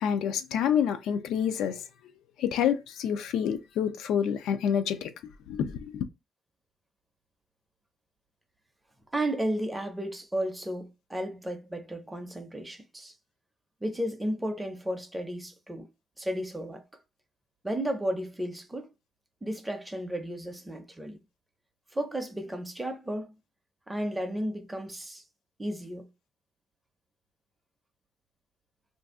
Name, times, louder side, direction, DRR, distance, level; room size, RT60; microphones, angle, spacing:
voice 1, 0.0-1.8 2.4-5.1 5.5-6.0, left 8 dB, 90° left, 0.4 m, -28 dB
voice 2, 9.1-13.1 13.8-15.9 16.2-16.8 17.6-18.9 19.4-21.2 21.9-23.4 23.9-25.2 25.6-26.1, right 1 dB, 10° right, 0.5 m, -33 dB
2.5 x 2.3 x 3.5 m
cardioid pair, 135°, 0 cm